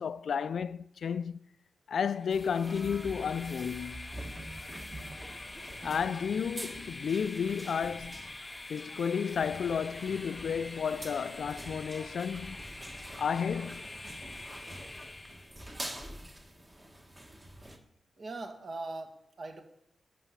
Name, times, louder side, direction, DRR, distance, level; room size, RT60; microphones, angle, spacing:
voice 1, 0.0-1.4 1.9-4.1 5.8-8.3 8.7-12.6 13.2-13.8, left 7 dB, 65° left, 0.4 m, -32 dB
Train, 2.1-15.6, left 2 dB, 15° left, 0.7 m, -45 dB
sound 1, 2.3-17.8, right 1 dB, 15° right, 1.6 m, -46 dB
voice 2, 18.2-19.6, right 2 dB, 45° right, 2.1 m, -40 dB
13.0 x 6.9 x 9.9 m
wide cardioid pair, 135°, 0 cm